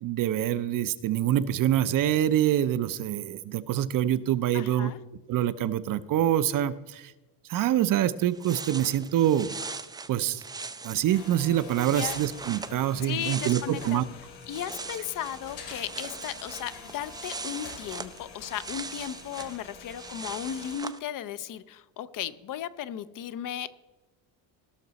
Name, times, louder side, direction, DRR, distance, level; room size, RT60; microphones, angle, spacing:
voice 1, 0.0-4.9 5.3-7.1 7.5-9.6 10.1-10.4 10.8-14.0, right 11 dB, 50° right, 13 dB, 0.6 m, -25 dB
voice 2, 4.5-5.0 11.9-12.2 13.0-14.1 14.5-23.8, left 10 dB, 50° left, 14 dB, 0.6 m, -36 dB
sound 1, 8.2-14.1 14.3-21.0, right 4 dB, 10° right, 0.3 m, -40 dB
sound 2, 11.1-20.8, left 5 dB, 75° left, 3.1 m, -46 dB
17.0 x 6.0 x 4.0 m, 1.1 s
cardioid pair, 125°, 42 cm